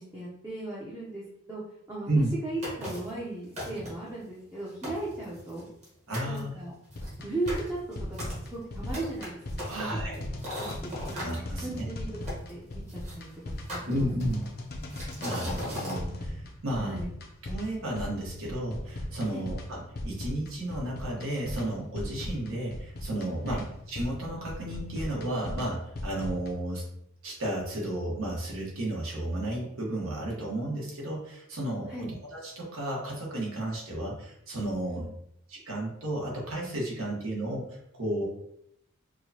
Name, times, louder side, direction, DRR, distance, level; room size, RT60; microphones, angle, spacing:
voice 1, 0.0-2.1 2.4-5.7 6.3-6.7 7.2-9.4 9.6-11.2 11.6-13.6 13.9-14.1 16.7-17.1 19.3-19.5 23.5-23.7 31.9-32.1 34.9-35.1, right 2 dB, 10° right, -7 dB, 0.6 m, -37 dB
sound 1, 2.6-3.2 3.6-4.1 4.5-4.6 4.8-5.9 6.1-6.4 6.9-11.4 12.3-13.2 13.7-14.4 14.9-16.0, equal, 30° right, 1.1 m, -38 dB
voice 2, 6.1-6.5 9.7-10.2 11.1-11.9 13.9-14.4 15.2-17.0 17.4-26.8 27.2-31.9 32.3-35.0 35.5-37.7 37.9-38.2, right 1 dB, 80° right, -3 dB, 1.2 m, -33 dB
sound 2, 6.9-26.5, left 1 dB, 45° left, 0.5 m, -38 dB
4.7 x 2.2 x 2.8 m, 0.75 s
head